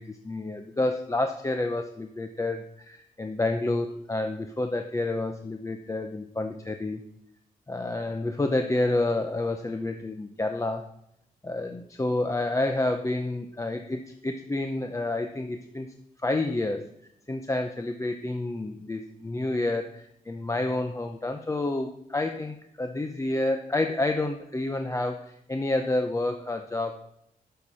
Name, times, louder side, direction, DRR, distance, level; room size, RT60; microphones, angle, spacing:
voice 1, 0.0-7.0 7.7-10.9 11.4-15.9 16.2-16.8 17.3-27.0, left 2 dB, 20° left, 5 dB, 0.7 m, -29 dB
12.0 x 6.8 x 5.5 m, 0.76 s
wide cardioid pair, 125°, 15 cm